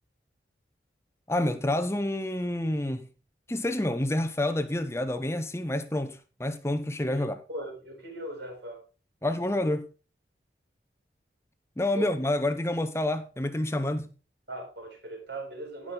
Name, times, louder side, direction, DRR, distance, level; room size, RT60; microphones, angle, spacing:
voice 1, 1.3-3.1 3.5-7.4 9.2-9.9 11.8-14.1, left 1 dB, 15° left, 0.7 m, -28 dB
voice 2, 7.1-8.8 11.9-12.1 14.5-15.9, right 1 dB, 70° right, 7.3 m, -39 dB
17.5 x 6.2 x 3.9 m
head